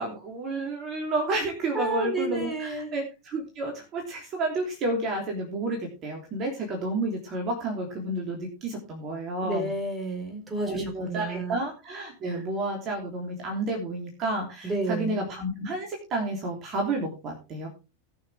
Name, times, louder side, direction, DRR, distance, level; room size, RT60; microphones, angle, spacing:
voice 1, 0.0-9.7 10.6-17.7, right 2 dB, 30° right, 1 dB, 3.3 m, -31 dB
voice 2, 1.7-2.9 9.4-11.6 12.3-12.4 14.6-15.3, right 2 dB, 10° right, 3 dB, 4.2 m, -31 dB
19.5 x 6.6 x 3.5 m, 0.30 s
figure-of-eight pair, 90°, 0 cm